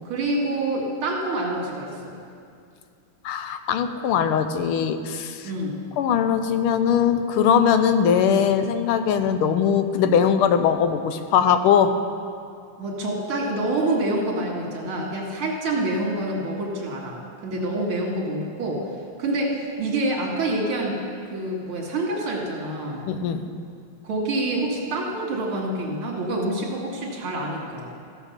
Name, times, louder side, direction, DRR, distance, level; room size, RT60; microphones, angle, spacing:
voice 1, 0.0-2.2 5.4-5.8 12.8-17.2 17.4-18.8 19.2-21.0 21.2-23.1 24.0-27.9, right 1 dB, 75° right, -1 dB, 2.6 m, -27 dB
voice 2, 3.2-5.5 6.0-12.0 23.1-23.5, left 7 dB, 90° left, 9 dB, 1.5 m, -21 dB
15.0 x 7.0 x 5.8 m, 2.3 s
omnidirectional pair, 2.3 m